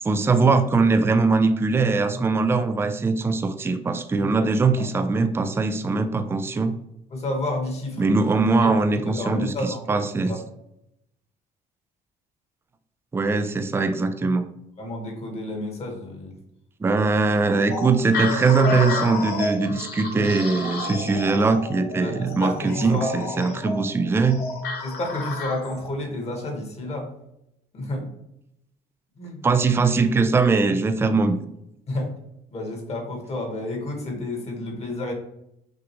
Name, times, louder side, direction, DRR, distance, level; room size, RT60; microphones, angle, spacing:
voice 1, 0.0-6.8 8.0-10.3 13.1-14.4 16.8-24.4 29.4-31.5, right 4 dB, 15° right, 8 dB, 0.4 m, -21 dB
voice 2, 7.1-8.2 8.6-8.7 9.0-10.0 10.3-10.4 14.8-16.3 22.0-23.1 24.8-27.1 27.7-28.1 29.2-29.4 31.9-32.1 32.5-35.1, left 1 dB, 40° left, 1 dB, 1.5 m, -30 dB
sound 1, 17.7-25.9, left 3 dB, 70° left, 1.1 m, -31 dB
6.1 x 2.4 x 3.0 m, 0.81 s
cardioid pair, 110°, 17 cm